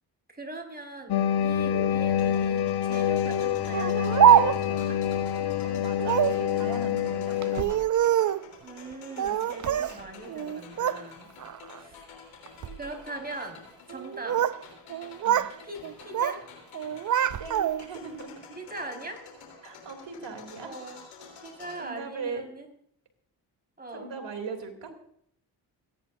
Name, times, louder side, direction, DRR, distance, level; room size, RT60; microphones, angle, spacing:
voice 1, 0.3-5.0 8.6-11.3 11.8-12.1 12.8-13.6 13.9-14.5 15.6-16.5 18.6-19.2 20.6-21.0 21.4-22.7 23.8-24.1, right 2 dB, 20° right, 2 dB, 4.9 m, -40 dB
sound 1, 1.1-7.6, left 10 dB, 55° left, 1.0 m, -27 dB
sound 2, 2.1-21.8, left 5 dB, 85° left, 3.6 m, -49 dB
Speech, 3.7-4.8 6.0-6.4 7.4-8.5 9.2-10.0 10.3-11.0 11.4-11.8 12.5-12.8 13.9-14.6 14.9-15.5 15.8-16.4 16.7-18.0, right 10 dB, 40° right, 0.5 m, -24 dB
voice 2, 5.6-7.8 14.3-14.4 15.2-15.5 17.4-18.5 19.6-20.8 21.4-22.4 23.9-24.9, right 4 dB, 60° right, 3 dB, 3.1 m, -39 dB
28.5 x 10.0 x 2.6 m, 0.65 s
supercardioid pair, 40°, 47 cm